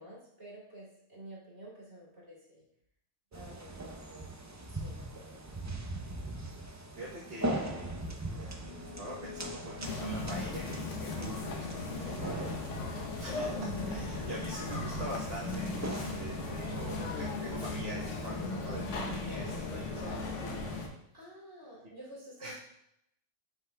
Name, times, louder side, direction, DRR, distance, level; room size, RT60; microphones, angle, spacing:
voice 1, 0.0-2.6 3.3-4.3 4.7-5.4 12.0-12.8 21.1-22.6, right 1 dB, 70° right, -5 dB, 3.1 m, -50 dB
sound 1, 3.3-16.9, right 1 dB, 25° right, 0.4 m, -41 dB
voice 2, 6.7-12.1 13.2-20.8 22.4-22.6, right 1 dB, 55° right, -5 dB, 1.2 m, -45 dB
sound 2, 8.6-19.6, left 1 dB, 40° left, 1.1 m, -44 dB
sound 3, 9.8-20.9, left 3 dB, 75° left, 1.3 m, -37 dB
9.6 x 5.7 x 2.2 m, 0.78 s
omnidirectional pair, 1.2 m